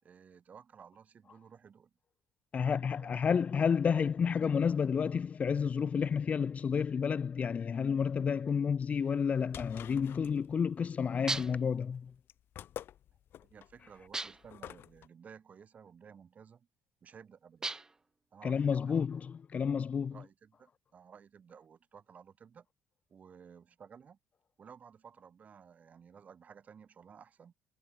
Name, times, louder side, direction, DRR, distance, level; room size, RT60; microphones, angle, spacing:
voice 1, 0.0-1.9 2.6-3.2 13.4-16.7 17.0-17.7 18.3-19.0 20.1-22.7 23.1-24.2 24.6-27.5, right 7 dB, 30° right, 6.7 m, -55 dB
voice 2, 2.5-12.1 18.4-20.1, left 6 dB, 30° left, 1.2 m, -30 dB
sound 1, 9.1-15.1, left 11 dB, 50° left, 3.4 m, -49 dB
sound 2, 11.3-11.7 14.1-14.6 17.6-18.1, right 3 dB, 15° right, 0.9 m, -37 dB
cardioid pair, 145°, 5 cm